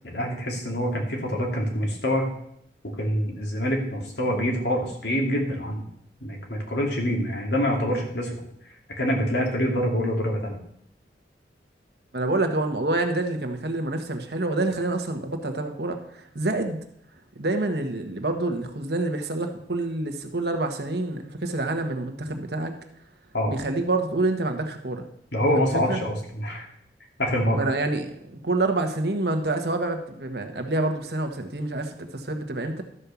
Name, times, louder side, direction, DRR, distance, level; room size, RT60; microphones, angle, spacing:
voice 1, 0.0-2.3 3.0-5.8 6.2-8.3 9.0-10.6 23.3-23.5 25.3-26.7 27.2-27.6, equal, 70° left, 0 dB, 2.6 m, -25 dB
voice 2, 12.1-16.8 17.3-22.7 23.5-25.1 25.6-26.0 27.5-32.8, right 2 dB, 65° right, 5 dB, 1.2 m, -27 dB
12.5 x 5.4 x 7.0 m, 0.71 s
head